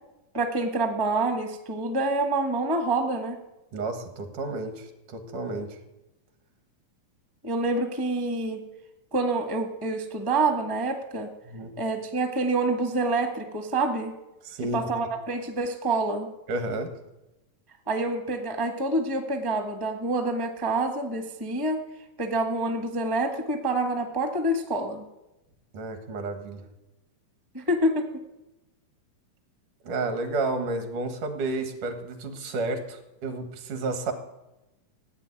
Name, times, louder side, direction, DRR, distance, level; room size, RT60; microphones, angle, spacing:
voice 1, 0.3-3.4 7.4-8.6 9.1-11.3 11.8-14.1 14.7-16.3 17.9-21.8 22.2-25.0 27.5-28.1, right 2 dB, 20° right, 5 dB, 0.6 m, -27 dB
voice 2, 3.7-5.8 11.5-11.7 14.4-14.9 16.5-16.9 25.7-26.6 29.8-34.1, right 2 dB, 70° right, 7 dB, 3.1 m, -31 dB
16.0 x 8.2 x 9.7 m, 0.97 s
omnidirectional pair, 3.8 m